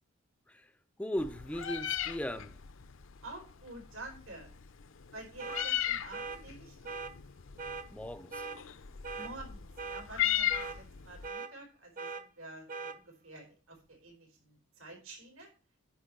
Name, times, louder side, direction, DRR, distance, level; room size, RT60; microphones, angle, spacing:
voice 1, 1.0-2.6 7.9-8.4, equal, 5° left, 0.4 m, -37 dB
Meow, 1.2-11.3, left 12 dB, 70° left, 0.6 m, -37 dB
voice 2, 3.2-4.5 5.1-7.0 9.1-15.5, right 2 dB, 85° right, 4.5 m, -49 dB
sound 1, 5.4-5.7 6.1-6.4 6.9-7.1 7.6-7.9 8.3-8.6 9.0-9.3 9.8-10.0 10.5-10.8 11.2-11.5 12.0-12.2 12.7-13.0, right 4 dB, 40° right, 0.8 m, -40 dB
10.0 x 5.0 x 6.5 m
head